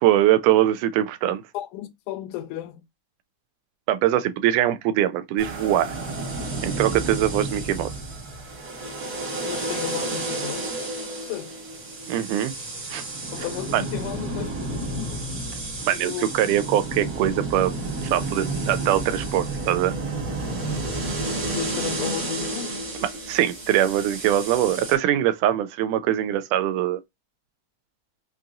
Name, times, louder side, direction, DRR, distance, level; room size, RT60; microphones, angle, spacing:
voice 1, 0.0-1.4 3.9-5.9 6.6-7.9 12.1-12.5 12.9-13.0 13.7-13.8 15.9-17.7 18.0-19.9 23.0-27.0, right 12 dB, 80° right, 2.1 m, -22 dB
voice 2, 1.5-2.8 9.4-10.7 11.2-11.6 13.3-15.3 15.9-16.5 21.5-22.8, left 13 dB, 80° left, 2.0 m, -34 dB
sound 1, 5.4-25.0, right 2 dB, 50° right, 1.1 m, -31 dB
5.8 x 2.7 x 2.4 m
omnidirectional pair, 3.6 m